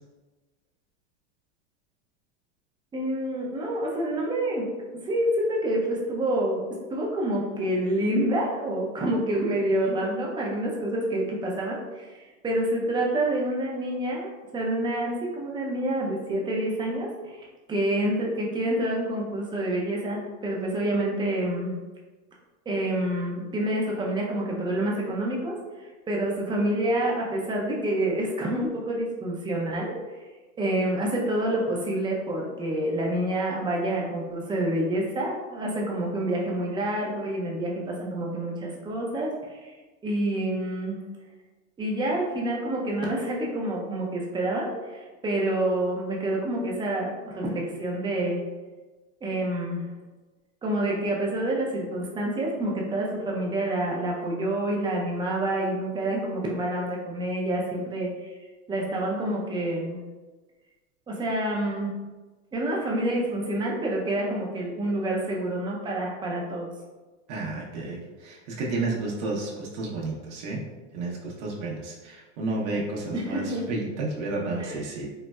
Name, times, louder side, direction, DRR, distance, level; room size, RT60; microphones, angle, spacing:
voice 1, 2.9-4.7 5.0-6.6 6.9-21.8 22.7-25.6 26.1-30.0 30.6-39.7 40.0-41.0 41.8-48.4 49.2-49.9 50.6-58.3 58.7-60.0 61.1-61.9 62.5-66.7 73.1-73.7 74.6-74.9, right 1 dB, 15° right, -2 dB, 0.4 m, -28 dB
voice 2, 67.3-70.6 70.9-75.1, right 2 dB, 65° right, -3 dB, 0.8 m, -31 dB
4.0 x 2.1 x 2.2 m, 1.3 s
hypercardioid pair, 120°, 37 cm